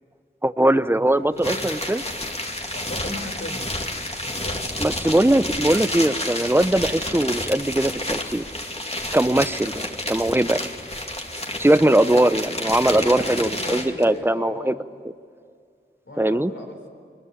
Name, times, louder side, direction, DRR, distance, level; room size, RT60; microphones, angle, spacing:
voice 1, 0.4-2.0 4.8-8.5 9.1-10.6 11.6-14.7 16.2-16.5, right 1 dB, 10° right, 13 dB, 0.8 m, -20 dB
voice 2, 0.9-1.7 2.7-3.8 4.2-4.6 11.8-12.3 12.9-14.8 16.1-16.8, left 1 dB, 85° left, 4 dB, 4.0 m, -36 dB
sound 1, 1.4-14.0, left 1 dB, 35° left, 2.6 m, -30 dB
23.5 x 22.5 x 9.9 m, 2.2 s
wide cardioid pair, 45°, 19 cm